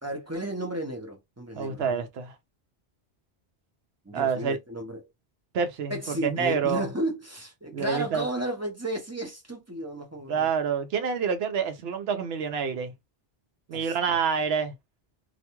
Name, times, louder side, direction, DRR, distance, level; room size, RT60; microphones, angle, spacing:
voice 1, 0.0-2.0 4.1-5.0 5.9-10.5 13.7-14.2, right 1 dB, 20° right, 0.6 m, -33 dB
voice 2, 1.6-2.3 4.1-4.6 5.5-6.9 7.7-8.3 10.3-12.9 13.7-14.7, right 6 dB, 90° right, 0.9 m, -27 dB
2.5 x 2.2 x 2.9 m
omnidirectional pair, 1.0 m